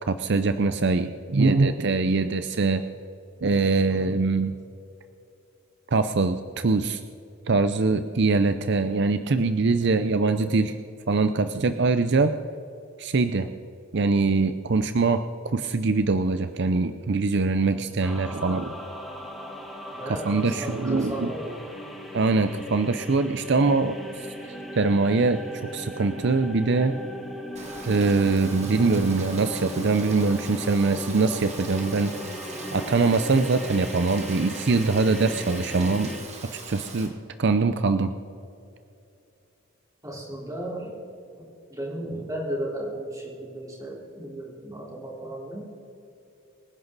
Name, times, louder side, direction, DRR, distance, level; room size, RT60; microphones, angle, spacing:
voice 1, 0.0-2.8 3.4-4.5 5.9-7.0 7.5-10.8 11.1-12.3 13.0-13.5 13.9-15.2 15.5-18.7 20.1-21.3 22.1-25.4 25.7-26.9 27.8-32.1 32.7-36.1 36.7-38.1, right 3 dB, 55° right, 10 dB, 0.6 m, -23 dB
voice 2, 9.8-10.1 17.6-17.8 19.9-21.6 40.0-40.9 41.7-45.6, right 1 dB, 15° right, -4 dB, 4.1 m, -35 dB
sound 1, 18.0-36.2, equal, ahead, 2.1 m, -38 dB
Rain, 27.6-37.1, right 3 dB, 30° right, 2.0 m, -40 dB
25.0 x 10.5 x 4.1 m, 2.7 s
head